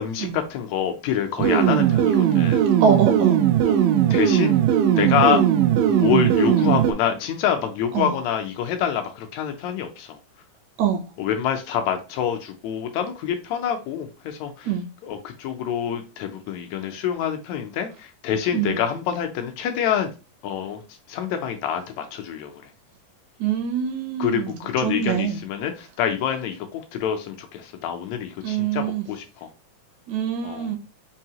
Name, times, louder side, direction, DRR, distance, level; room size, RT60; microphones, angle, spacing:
voice 1, 0.0-2.6 3.6-3.8 4.1-4.6 5.0-5.4 5.9-10.2 11.2-14.7 15.0-20.1 20.4-20.8 21.1-22.6 24.2-29.5 30.4-30.7, left 9 dB, 80° left, 1.7 m, -26 dB
sound 1, 1.4-6.9, right 10 dB, 90° right, 2.2 m, -19 dB
voice 2, 2.8-3.4 5.3-5.4 7.9-8.1 10.8-11.0 14.6-14.9 18.5-18.8 23.4-24.6 24.8-25.4 28.4-29.1 30.1-30.8, right 8 dB, 75° right, 1.9 m, -24 dB
5.4 x 2.7 x 2.8 m
omnidirectional pair, 3.7 m